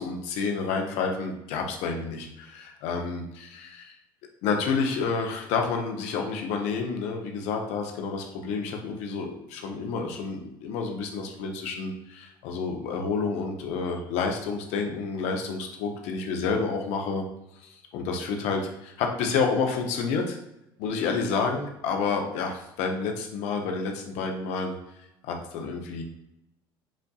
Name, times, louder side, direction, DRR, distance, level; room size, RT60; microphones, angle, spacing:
voice 1, 0.0-4.0 4.4-17.2 17.6-20.4 20.8-24.7 25.2-26.0, left 5 dB, 65° left, 2 dB, 0.9 m, -29 dB
7.3 x 2.6 x 2.3 m, 0.87 s
hypercardioid pair, 70°, 12 cm